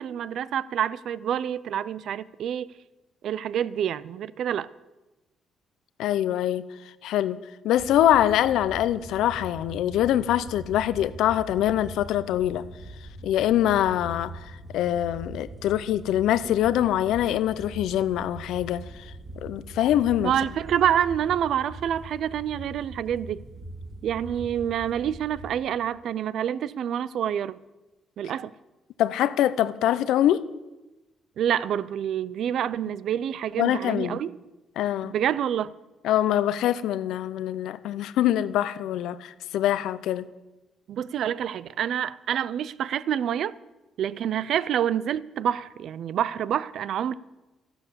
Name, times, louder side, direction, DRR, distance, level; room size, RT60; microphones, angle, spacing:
voice 1, 0.0-2.7 3.2-4.7 20.2-23.4 24.0-27.6 28.2-28.5 31.4-34.3 35.1-35.7 40.9-43.6 44.0-47.1, right 9 dB, 70° right, 0.5 m, -27 dB
voice 2, 6.0-6.6 7.0-7.4 7.6-12.6 13.2-19.1 19.4-20.3 29.0-30.4 33.6-34.2 34.8-35.1 36.0-40.3, left 12 dB, 85° left, 0.6 m, -24 dB
sound 1, 7.7-25.5, right 1 dB, 40° right, 3.2 m, -42 dB
14.0 x 12.0 x 7.0 m
cardioid pair, 90°, 0 cm